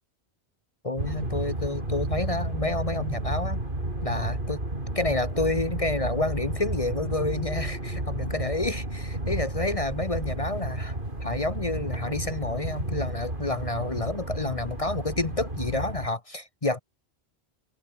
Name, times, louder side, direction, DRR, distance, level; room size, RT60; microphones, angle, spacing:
voice 1, 0.8-3.6 4.0-4.6 4.9-10.9 11.2-16.8, left 2 dB, 35° left, 1.4 m, -29 dB
sound 1, 1.0-16.1, right 1 dB, 55° right, 5.2 m, -32 dB
omnidirectional pair, 1.1 m